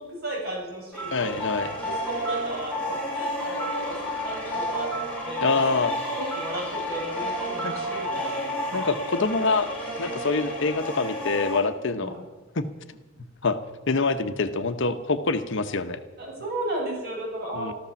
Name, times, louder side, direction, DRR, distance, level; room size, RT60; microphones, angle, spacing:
voice 1, 0.0-1.3 1.8-5.5 6.2-8.8 12.0-12.2 16.2-17.7, right 1 dB, 45° right, -3 dB, 7.1 m, -35 dB
sound 1, 0.9-11.6, equal, 5° left, 3.8 m, -31 dB
voice 2, 1.1-1.7 5.4-5.9 7.6-7.8 8.7-9.7 10.0-12.1 12.6-12.7 13.4-13.6 13.9-16.0 17.6-17.7, left 3 dB, 55° left, 9 dB, 0.9 m, -25 dB
14.0 x 13.5 x 7.1 m, 1.2 s
head